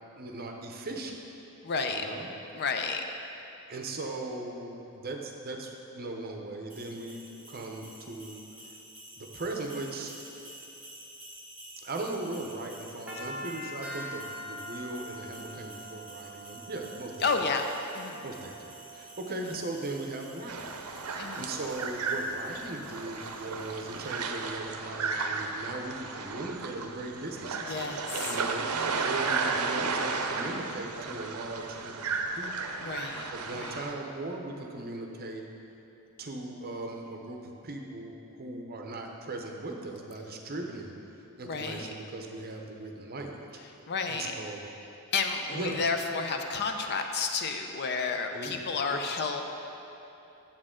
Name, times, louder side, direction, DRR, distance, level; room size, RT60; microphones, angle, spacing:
voice 1, 0.2-1.2 1.9-2.3 3.7-8.4 8.7-8.8 9.2-10.1 11.8-17.3 18.2-20.7 21.4-27.7 28.2-28.7 29.0-32.0 32.3-32.8 33.3-35.5 36.2-40.9 41.4-43.5 44.1-44.7 45.5-45.8 48.3-49.1, right 2 dB, 45° right, 2 dB, 0.7 m, -38 dB
voice 2, 1.6-2.0 2.5-3.0 17.2-17.7 17.9-18.3 19.4-19.5 21.2-21.5 27.7-28.4 28.7-29.1 32.8-33.8 41.5-41.9 43.9-44.3 45.1-49.4, left 4 dB, 50° left, 4 dB, 0.5 m, -31 dB
sound 1, 6.7-24.4, right 1 dB, 5° right, 1.8 m, -46 dB
sound 2, 20.5-33.9, right 4 dB, 80° right, 0.6 m, -34 dB
8.7 x 7.4 x 3.7 m, 2.9 s
head